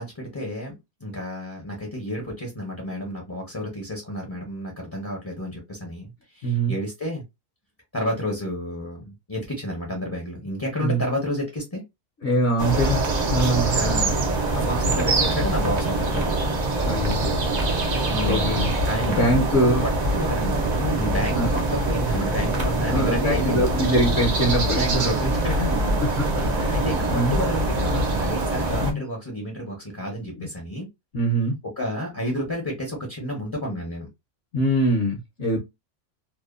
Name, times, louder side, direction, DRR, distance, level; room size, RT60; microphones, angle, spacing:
voice 1, 0.0-7.2 7.9-11.8 13.7-16.4 18.1-18.5 18.9-19.5 20.1-23.6 24.6-25.9 26.7-30.9 31.6-34.1, equal, 25° left, 0.4 m, -30 dB
voice 2, 6.4-6.7 10.8-11.1 12.2-13.0 13.3-13.8 16.8-17.4 18.3-18.7 19.2-19.9 21.4-21.5 22.9-25.1 25.6-25.7 26.4-27.4 28.8-29.0 30.4-30.5 31.1-31.5 34.5-35.6, right 1 dB, 60° left, 0.8 m, -23 dB
sound 1, 12.6-28.9, right 2 dB, 85° right, 0.3 m, -24 dB
2.7 x 2.1 x 2.3 m
omnidirectional pair, 1.6 m